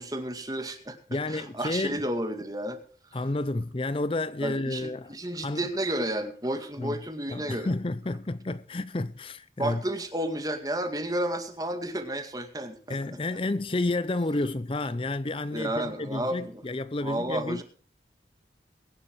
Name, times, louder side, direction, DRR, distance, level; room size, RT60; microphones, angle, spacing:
voice 1, 0.0-1.0 1.3-2.8 4.4-7.7 9.6-13.2 15.5-16.6 17.0-17.6, right 1 dB, 20° right, 2.1 m, -32 dB
voice 2, 1.1-2.0 3.1-5.1 5.4-5.7 6.8-7.0 7.3-9.8 12.9-17.6, left 2 dB, 30° left, 0.5 m, -30 dB
22.0 x 11.0 x 3.2 m
head